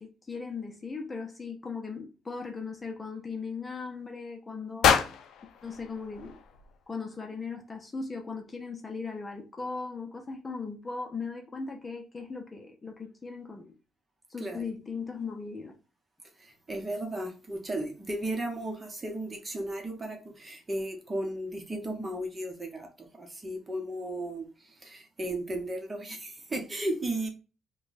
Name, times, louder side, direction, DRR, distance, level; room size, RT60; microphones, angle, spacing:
voice 1, 0.0-5.0 5.6-6.4 6.9-13.7 14.3-15.7, left 4 dB, 25° left, 0.7 m, -38 dB
sound 1, 4.8-7.0, left 8 dB, 80° left, 0.4 m, -28 dB
voice 2, 14.4-14.7 16.4-27.3, right 1 dB, 25° right, 1.0 m, -35 dB
3.0 x 2.3 x 4.0 m
cardioid pair, 90°, 0 cm